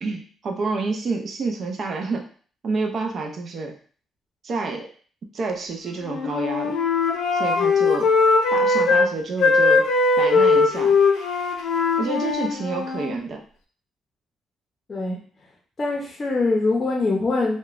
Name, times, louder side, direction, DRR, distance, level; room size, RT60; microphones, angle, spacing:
voice 1, 0.0-2.3 2.6-3.8 4.4-4.9 5.3-6.8 7.3-8.1 8.5-9.9 10.2-11.0 12.0-13.4, right 3 dB, 55° right, 3 dB, 0.4 m, -28 dB
Wind instrument woodwind instrument, 6.0-9.1 9.4-13.2, left 3 dB, 80° left, 0.5 m, -20 dB
voice 2, 15.8-17.6, left 3 dB, 35° left, -1 dB, 0.6 m, -23 dB
2.9 x 2.1 x 2.4 m, 0.43 s
cardioid pair, 90°, 0 cm